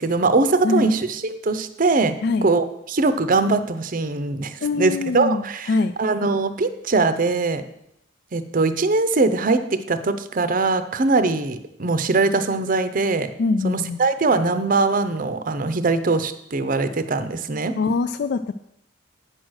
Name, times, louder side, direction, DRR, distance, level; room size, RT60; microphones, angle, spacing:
voice 1, 0.0-5.7 6.0-7.6 8.3-13.3 13.6-17.8, right 3 dB, 45° right, 11 dB, 0.6 m, -21 dB
voice 2, 4.6-5.9 13.4-14.0 17.8-18.5, left 3 dB, 55° left, 11 dB, 0.3 m, -23 dB
9.0 x 6.2 x 6.3 m, 0.79 s
head